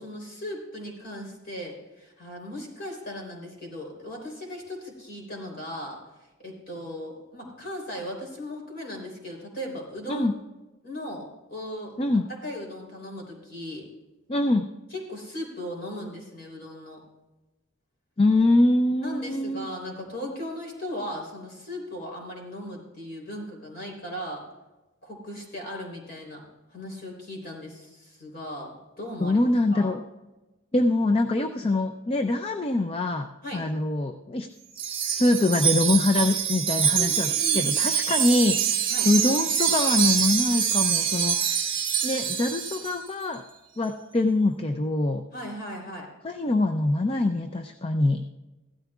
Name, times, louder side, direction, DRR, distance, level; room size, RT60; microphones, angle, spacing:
voice 1, 0.0-6.0 6.4-10.3 10.8-12.0 12.4-13.9 14.9-17.0 19.0-24.4 25.0-26.4 26.7-28.7 29.0-29.4 29.7-30.0 33.4-33.6 37.0-37.7 38.9-39.1 45.3-46.1, left 1 dB, 50° left, 0 dB, 3.6 m, -37 dB
voice 2, 14.3-14.7 18.2-19.7 29.2-30.0 30.7-33.3 33.5-34.5 34.8-43.4 43.8-45.2 46.2-48.2, left 2 dB, 25° left, 6 dB, 0.4 m, -24 dB
Wind chime, 34.8-43.0, right 8 dB, 25° right, 1.1 m, -25 dB
15.5 x 13.0 x 2.4 m, 1.1 s
head